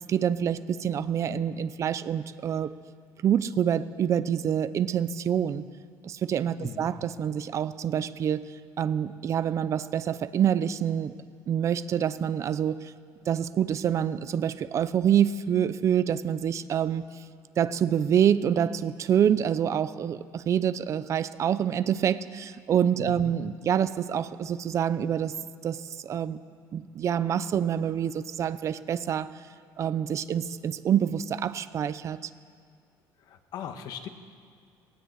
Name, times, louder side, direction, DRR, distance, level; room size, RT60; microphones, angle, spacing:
voice 1, 0.1-2.7 3.2-5.7 6.0-8.4 8.8-11.1 11.5-12.8 13.3-17.0 17.6-25.3 25.6-26.4 26.7-29.3 29.8-32.3, right 9 dB, 40° right, 14 dB, 0.6 m, -26 dB
voice 2, 23.0-23.3 33.2-34.1, left 8 dB, 60° left, 7 dB, 1.6 m, -39 dB
18.0 x 18.0 x 8.2 m, 2.2 s
cardioid pair, 145°, 8 cm